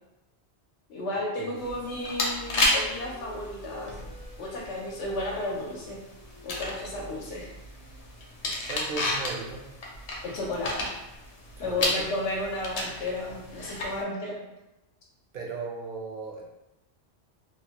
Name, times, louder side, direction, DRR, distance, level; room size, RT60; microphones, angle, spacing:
voice 1, 0.9-3.9 4.4-6.0 6.4-7.5 10.2-10.9 11.6-14.4, left 2 dB, 80° left, -3 dB, 0.9 m, -33 dB
Wind instrument woodwind instrument, 1.3-8.1, equal, 75° right, 1.1 m, -51 dB
sound 1, 1.6-14.0, left 1 dB, 55° left, 0.4 m, -33 dB
voice 2, 8.7-9.7 11.6-12.1 15.3-16.5, right 4 dB, 60° right, -2 dB, 0.7 m, -36 dB
2.8 x 2.1 x 2.8 m, 0.94 s
omnidirectional pair, 1.2 m